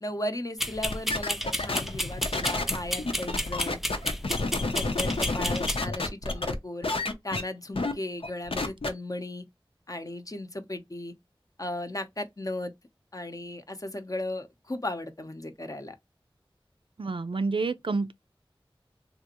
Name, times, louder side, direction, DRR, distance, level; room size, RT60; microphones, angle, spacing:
voice 1, 0.0-3.8 4.7-6.9 7.2-9.4 9.9-11.1 11.6-12.7 13.1-16.0, left 1 dB, 40° left, 0.7 m, -36 dB
sound 1, 0.6-5.8, equal, 5° right, 0.4 m, -32 dB
sound 2, 0.8-6.6 6.8-7.4 7.8-7.9 8.2-8.9, left 3 dB, 80° left, 0.7 m, -30 dB
voice 2, 17.0-18.1, right 3 dB, 65° right, 0.4 m, -28 dB
3.4 x 2.5 x 2.9 m
wide cardioid pair, 45°, 9 cm